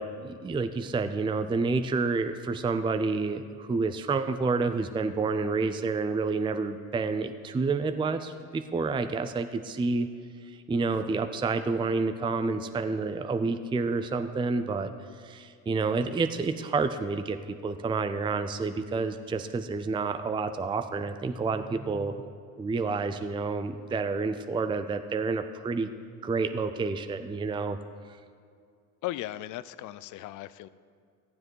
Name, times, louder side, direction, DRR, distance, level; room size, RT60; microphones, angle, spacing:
voice 1, 0.0-10.1 10.4-14.9 15.2-22.2 22.6-25.9 26.2-27.8, right 4 dB, 15° right, 9 dB, 0.5 m, -29 dB
voice 2, 29.0-30.7, left 15 dB, 55° left, 16 dB, 0.5 m, -37 dB
15.0 x 7.5 x 4.7 m, 2.2 s
supercardioid pair, 85°, 37 cm